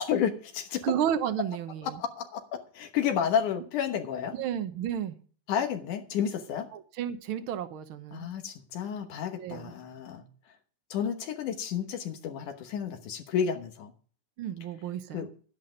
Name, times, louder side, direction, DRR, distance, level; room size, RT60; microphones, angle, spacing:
voice 1, 0.0-0.8 1.8-4.3 5.5-6.7 8.1-10.2 10.9-13.9 15.1-15.3, left 8 dB, 80° left, 5 dB, 2.7 m, -31 dB
voice 2, 0.8-2.0 4.3-5.2 6.7-8.3 9.4-9.7 14.4-15.3, right 9 dB, 65° right, 10 dB, 1.4 m, -32 dB
11.5 x 10.5 x 5.1 m, 0.41 s
omnidirectional pair, 3.5 m